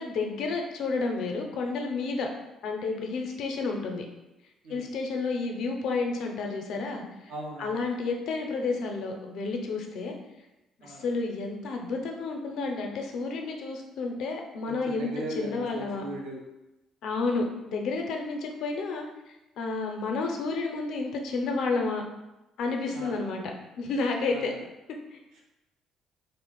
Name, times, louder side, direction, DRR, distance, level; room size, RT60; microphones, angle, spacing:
voice 1, 0.0-2.3 2.6-4.0 4.7-7.3 7.6-10.1 10.8-15.1 15.4-16.0 17.0-19.1 19.6-22.0 22.6-23.4 23.8-24.5 25.1-25.2, left 3 dB, 70° left, 2 dB, 0.5 m, -30 dB
voice 2, 7.3-7.8 10.8-11.1 14.7-16.4 22.9-23.2 24.3-24.6 25.3-25.4, right 1 dB, 80° right, -2 dB, 0.5 m, -39 dB
2.4 x 2.0 x 3.7 m, 0.98 s
supercardioid pair, 80°, 0 cm